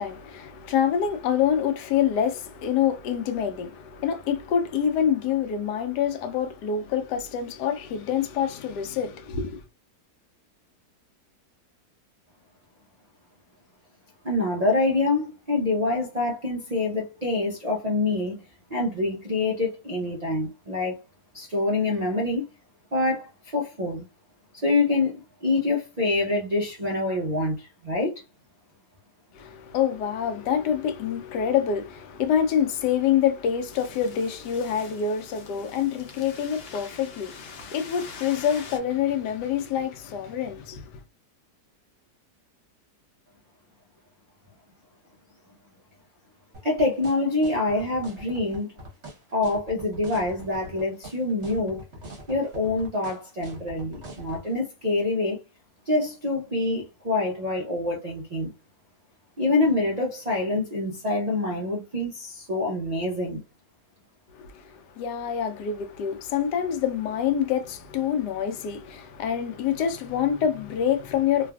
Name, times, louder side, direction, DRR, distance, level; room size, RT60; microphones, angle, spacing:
voice 1, 0.0-9.6 29.3-40.8 64.3-71.5, left 8 dB, 85° left, 1.2 m, -26 dB
voice 2, 14.2-18.4 18.7-21.0 21.3-22.5 22.9-24.1 24.5-28.2 46.6-48.7 49.3-51.8 52.3-55.4 55.9-58.5 59.4-63.4, left 2 dB, 75° right, 0.3 m, -26 dB
sound 1, 33.7-38.8, left 5 dB, 55° left, 0.7 m, -44 dB
sound 2, 46.5-54.4, right 1 dB, 50° right, 1.3 m, -42 dB
3.2 x 2.4 x 2.3 m
omnidirectional pair, 1.7 m